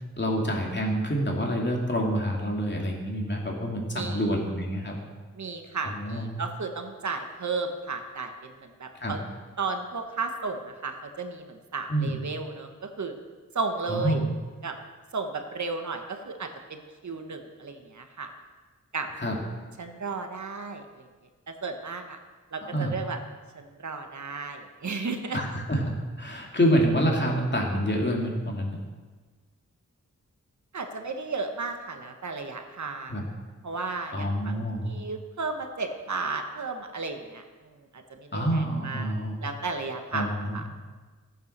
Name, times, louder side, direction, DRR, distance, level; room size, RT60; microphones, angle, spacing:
voice 1, 0.2-5.0 5.8-6.3 9.0-9.1 11.9-12.1 13.9-14.3 19.2-19.4 22.6-22.9 25.3-25.8 26.2-28.8 33.1-33.3 34.1-34.9 38.3-39.4 40.1-40.6, equal, 35° left, -1 dB, 2.8 m, -27 dB
voice 2, 3.9-4.3 5.3-9.2 9.6-13.2 13.5-14.2 14.6-14.8 15.1-18.3 18.9-19.1 19.8-21.0 21.5-22.2 22.5-23.2 23.5-25.4 30.7-33.1 33.6-39.1 39.4-40.6, right 4 dB, 65° right, 5 dB, 1.4 m, -34 dB
15.0 x 9.1 x 6.8 m, 1.4 s
wide cardioid pair, 105°, 31 cm